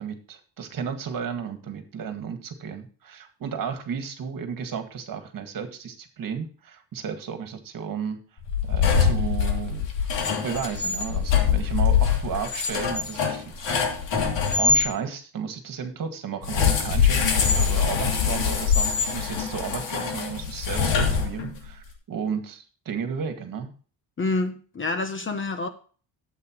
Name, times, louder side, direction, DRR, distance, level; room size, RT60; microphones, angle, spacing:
voice 1, 0.0-8.2 8.7-10.1 10.4-13.8 14.6-23.7, right 7 dB, 45° right, 2.0 m, -33 dB
sound 1, 8.4-14.8 16.4-21.7, left 6 dB, 70° left, 3.1 m, -23 dB
voice 2, 24.2-25.7, left 3 dB, 25° left, 1.1 m, -27 dB
12.5 x 8.4 x 3.1 m
cardioid pair, 155°, 44 cm